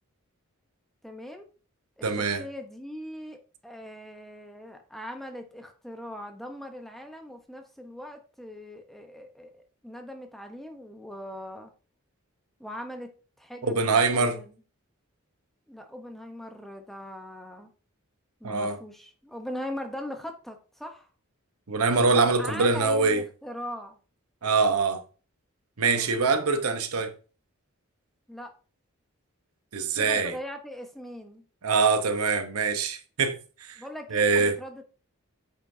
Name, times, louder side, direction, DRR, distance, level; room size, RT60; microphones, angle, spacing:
voice 1, 1.0-1.5 2.0-11.7 12.6-13.1 13.4-14.5 15.7-17.7 18.4-21.1 22.1-24.0 25.9-26.1 28.3-28.5 30.0-31.4 33.8-34.8, left 1 dB, ahead, 0.8 m, -40 dB
voice 2, 2.0-2.4 13.6-14.4 18.4-18.8 21.7-23.2 24.4-25.0 25.8-27.1 29.7-30.3 31.6-33.8 34.1-34.6, right 4 dB, 90° right, 0.9 m, -24 dB
8.7 x 5.9 x 2.7 m
head